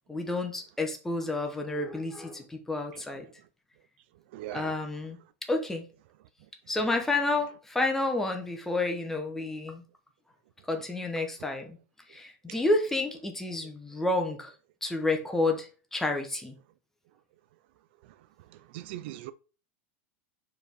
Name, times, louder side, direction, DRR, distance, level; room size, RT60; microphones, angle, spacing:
voice 1, 0.1-3.3 4.5-5.2 5.5-5.8 6.7-9.8 10.7-11.8 12.1-14.5 14.8-16.5, left 2 dB, 5° left, 1.0 m, -30 dB
voice 2, 4.3-4.8 12.5-12.6 18.5-19.3, right 15 dB, 50° right, 0.4 m, -40 dB
5.2 x 4.6 x 5.2 m
supercardioid pair, 165°, 7 cm